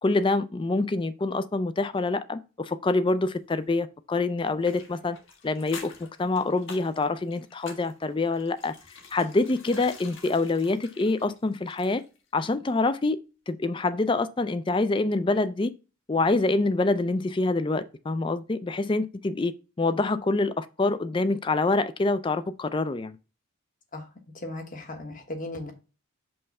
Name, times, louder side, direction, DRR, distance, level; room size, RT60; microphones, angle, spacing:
voice 1, 0.0-5.2 5.4-8.7 9.1-12.0 12.3-13.2 13.5-15.7 16.1-19.5 19.8-23.2, left 3 dB, 25° left, 0.3 m, -26 dB
sound 1, 4.6-12.2 12.5-12.6, left 4 dB, 60° left, 1.4 m, -47 dB
voice 2, 24.3-25.7, left 1 dB, 40° left, 1.3 m, -36 dB
5.5 x 3.3 x 5.3 m
head